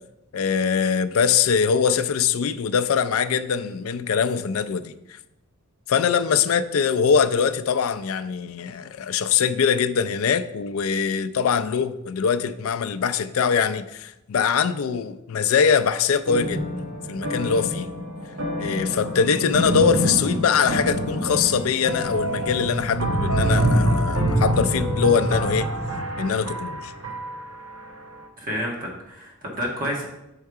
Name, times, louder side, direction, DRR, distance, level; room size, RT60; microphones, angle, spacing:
voice 1, 0.3-5.2 5.9-16.6 17.1-17.9 18.6-25.7 26.2-26.9, left 6 dB, 70° left, 12 dB, 0.4 m, -22 dB
sound 1, 16.3-27.7, equal, 75° right, 1.1 m, -25 dB
voice 2, 28.4-30.0, equal, 40° right, -1 dB, 1.6 m, -29 dB
6.4 x 4.6 x 4.7 m, 0.89 s
head